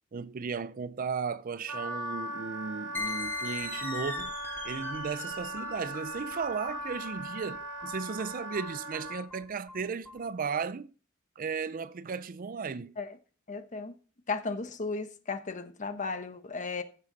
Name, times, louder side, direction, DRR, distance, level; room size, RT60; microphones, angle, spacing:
voice 1, 0.1-4.3 4.6-10.9 11.4-13.0, right 5 dB, 45° right, 0.4 m, -35 dB
Wind instrument woodwind instrument, 1.7-9.2, right 1 dB, 70° right, 1.8 m, -39 dB
sound 1, 2.9-10.2, left 3 dB, 10° left, 3.1 m, -40 dB
voice 2, 13.5-13.9 14.3-16.8, left 4 dB, 40° left, 1.2 m, -35 dB
14.5 x 7.6 x 4.0 m
head